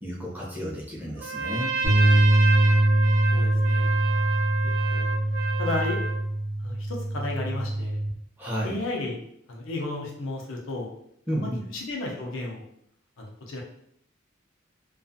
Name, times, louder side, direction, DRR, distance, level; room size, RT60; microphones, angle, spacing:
voice 1, 0.0-1.7 8.4-8.8 11.3-11.7, equal, 10° right, -4 dB, 0.5 m, -32 dB
Trumpet, 1.2-6.2, right 4 dB, 80° right, 0.5 m, -30 dB
sound 1, 1.8-8.1, right 1 dB, 65° right, 0.9 m, -23 dB
voice 2, 3.3-3.9 4.9-5.1 5.6-6.0 6.6-8.0 8.6-9.2 9.5-10.9 11.3-12.7 13.2-13.6, left 2 dB, 70° left, -1 dB, 0.6 m, -33 dB
2.4 x 2.4 x 2.6 m, 0.72 s
head